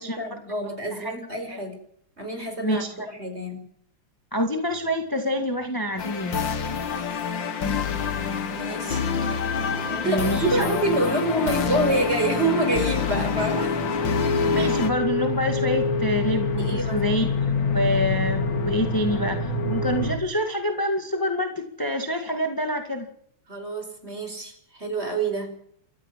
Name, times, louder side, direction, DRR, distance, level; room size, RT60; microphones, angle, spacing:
voice 1, 0.0-1.8 2.2-3.6 8.5-9.1 9.7-13.8 14.5-14.7 16.6-17.1 23.5-25.5, right 2 dB, 30° right, 5 dB, 5.3 m, -27 dB
voice 2, 4.3-6.5 10.0-10.6 14.5-17.3 17.7-23.1, equal, 10° left, 4 dB, 1.8 m, -26 dB
sound 1, 6.0-14.9, left 6 dB, 65° left, 2.2 m, -27 dB
sound 2, 9.3-20.2, left 3 dB, 85° left, 3.0 m, -27 dB
29.0 x 14.0 x 7.5 m, 0.68 s
omnidirectional pair, 2.2 m